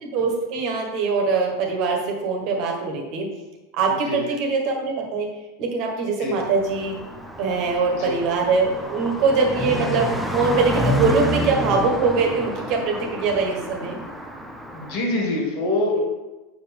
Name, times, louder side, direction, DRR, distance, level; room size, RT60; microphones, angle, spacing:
voice 1, 0.0-3.3 3.7-5.3 5.6-7.0 7.4-14.0, right 4 dB, 45° right, 1 dB, 1.4 m, -23 dB
voice 2, 3.9-4.3 6.2-6.3 7.9-8.1 14.7-16.0, left 2 dB, 45° left, 0 dB, 2.2 m, -25 dB
Car passing by, 6.4-15.0, equal, 5° right, 0.7 m, -29 dB
8.0 x 5.6 x 3.4 m, 1.1 s
figure-of-eight pair, 85°, 0 cm